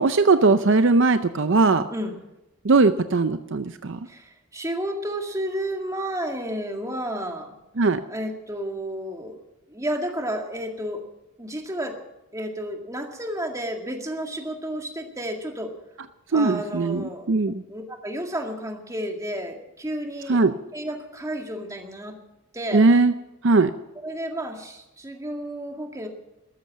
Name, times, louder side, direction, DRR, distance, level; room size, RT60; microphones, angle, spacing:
voice 1, 0.0-1.9 2.6-4.0 7.8-8.0 16.3-17.6 20.3-20.5 22.7-23.1 23.4-23.7, right 3 dB, 60° right, 10 dB, 0.6 m, -19 dB
voice 2, 1.9-2.2 4.1-7.6 8.1-11.0 11.4-12.0 12.3-15.7 16.3-17.3 17.7-20.4 20.7-22.2 22.5-22.9 24.0-26.1, right 1 dB, 15° right, 3 dB, 2.0 m, -31 dB
13.5 x 13.5 x 7.5 m, 0.93 s
head